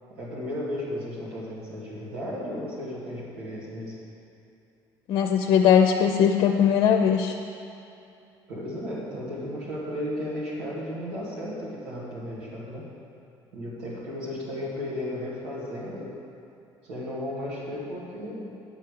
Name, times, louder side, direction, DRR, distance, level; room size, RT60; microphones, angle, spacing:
voice 1, 0.1-4.0 8.5-12.9 13.5-16.2 16.8-18.5, left 1 dB, 85° right, -7 dB, 2.5 m, -34 dB
voice 2, 5.1-7.3, left 8 dB, 65° left, 3 dB, 0.6 m, -20 dB
9.8 x 5.5 x 6.7 m, 2.8 s
supercardioid pair, 75°, 10 cm